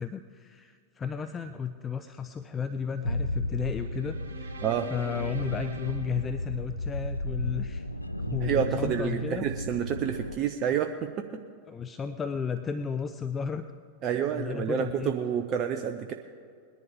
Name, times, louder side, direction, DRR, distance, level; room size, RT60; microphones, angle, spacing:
voice 1, 0.0-4.6 4.9-7.8 8.3-9.5 11.7-13.7 14.3-15.1, left 6 dB, 20° left, 10 dB, 0.5 m, -34 dB
sound 1, 3.0-10.4, left 1 dB, 90° left, 0.5 m, -34 dB
sound 2, 3.7-7.1, right 4 dB, 70° right, 2.5 m, -44 dB
voice 2, 8.4-11.4 14.0-16.1, right 8 dB, 35° right, 6 dB, 0.6 m, -29 dB
20.5 x 10.5 x 3.6 m, 2.3 s
figure-of-eight pair, 90°, 0 cm